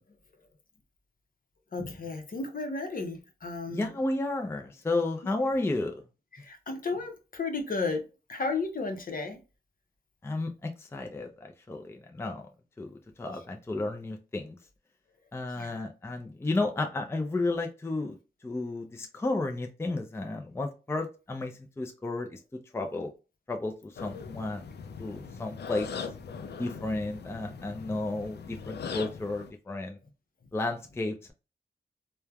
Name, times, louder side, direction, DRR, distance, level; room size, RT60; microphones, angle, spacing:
voice 1, 1.7-3.9 5.2-5.3 6.4-8.0 8.3-9.4 15.6-15.9, left 3 dB, 55° left, 0.7 m, -33 dB
voice 2, 3.7-6.0 10.2-12.5 12.8-14.6 15.3-18.2 18.4-23.1 23.5-24.6 25.0-26.0 26.6-30.0 30.5-31.3, left 2 dB, 15° left, 0.4 m, -32 dB
sound 1, 24.0-29.5, left 5 dB, 80° left, 0.4 m, -40 dB
3.1 x 2.1 x 2.3 m
wide cardioid pair, 70°, 17 cm